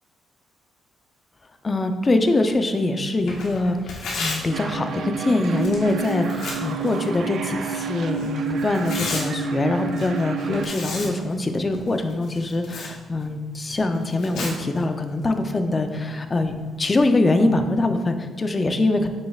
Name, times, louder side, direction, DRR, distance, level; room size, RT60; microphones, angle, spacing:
voice 1, 1.6-19.1, left 2 dB, 30° left, 7 dB, 0.6 m, -23 dB
Tearing, 3.2-17.0, left 3 dB, 75° left, 1.4 m, -37 dB
sound 1, 4.5-10.7, right 5 dB, 65° right, 0.5 m, -29 dB
6.9 x 6.4 x 2.4 m, 1.4 s
cardioid pair, 90°, 0 cm